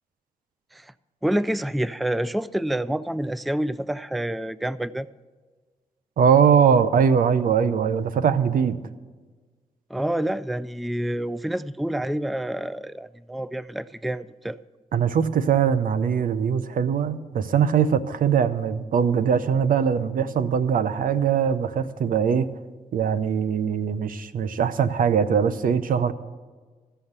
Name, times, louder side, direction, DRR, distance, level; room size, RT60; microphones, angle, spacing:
voice 1, 1.2-5.1 9.9-14.6, right 1 dB, ahead, 18 dB, 0.3 m, -28 dB
voice 2, 6.2-8.8 14.9-22.5 22.9-26.1, right 7 dB, 75° right, 13 dB, 0.7 m, -21 dB
14.5 x 5.7 x 8.0 m, 1.4 s
cardioid pair, 60°, 14 cm